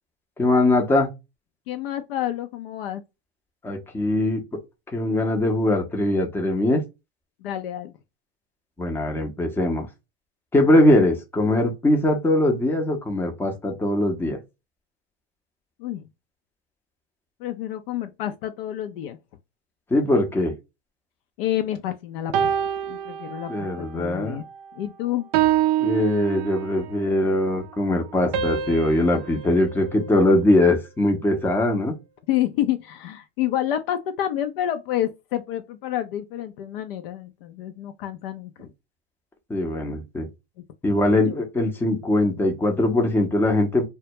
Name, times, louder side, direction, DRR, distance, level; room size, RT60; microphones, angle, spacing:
voice 1, 0.4-1.1 3.6-4.4 4.9-6.8 8.8-9.9 10.5-14.4 19.9-20.5 23.5-24.4 25.8-31.9 39.5-40.3 40.8-43.9, left 1 dB, 5° left, 0.6 m, -21 dB
voice 2, 1.7-3.0 7.4-7.9 10.6-10.9 15.8-16.1 17.4-19.2 21.4-22.5 22.9-24.4 24.8-25.3 32.3-38.7 41.0-41.4, left 12 dB, 60° left, 0.5 m, -29 dB
sound 1, 22.3-23.9 24.3-24.7 25.3-27.0 28.3-30.7, right 10 dB, 45° right, 0.4 m, -26 dB
2.2 x 2.1 x 2.7 m
hypercardioid pair, 115°, 33 cm